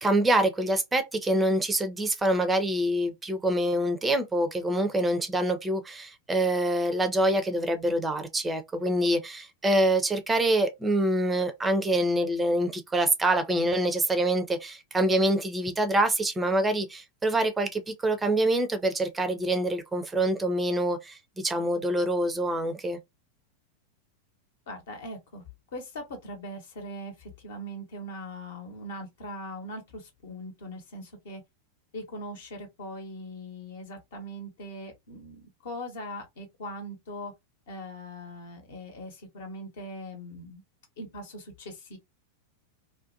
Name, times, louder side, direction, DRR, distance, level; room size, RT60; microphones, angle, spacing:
voice 1, 0.0-23.0, right 1 dB, 10° right, 0.4 m, -25 dB
voice 2, 24.7-31.4 31.9-37.3 37.7-40.6 41.0-42.0, equal, 55° left, 0.9 m, -40 dB
2.5 x 2.1 x 2.5 m
figure-of-eight pair, 90°, 0 cm